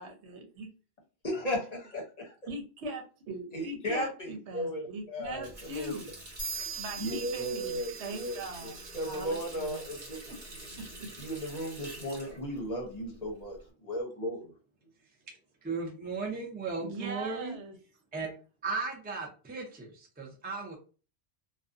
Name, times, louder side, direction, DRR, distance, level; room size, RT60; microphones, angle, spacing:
voice 1, 0.0-0.7 2.5-6.1 6.8-8.7 9.0-9.8 10.3-10.4 11.0-11.1 16.8-17.8, right 2 dB, 85° right, 3 dB, 1.0 m, -41 dB
voice 2, 1.2-2.3 3.5-5.5 5.7-6.0 7.0-10.2 11.2-14.5, equal, 40° left, 0 dB, 0.8 m, -35 dB
Water tap faucet, 5.2-13.7, right 2 dB, 45° right, 1.1 m, -48 dB
sound 1, 6.4-10.0, right 5 dB, 10° left, 0.7 m, -42 dB
voice 3, 15.6-17.6 18.1-18.3 18.6-20.8, right 4 dB, 15° right, 0 dB, 0.3 m, -36 dB
2.4 x 2.2 x 2.4 m, 0.36 s
omnidirectional pair, 1.1 m